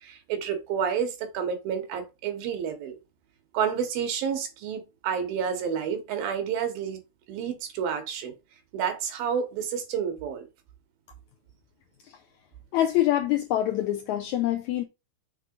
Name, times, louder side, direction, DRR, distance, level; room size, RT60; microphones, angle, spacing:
voice 1, 0.0-2.9 3.5-7.0 7.3-8.3 8.7-10.5, right 7 dB, 85° right, 3.2 m, -30 dB
voice 2, 12.7-14.8, left 13 dB, 80° left, 1.7 m, -25 dB
6.4 x 3.8 x 5.4 m
omnidirectional pair, 4.1 m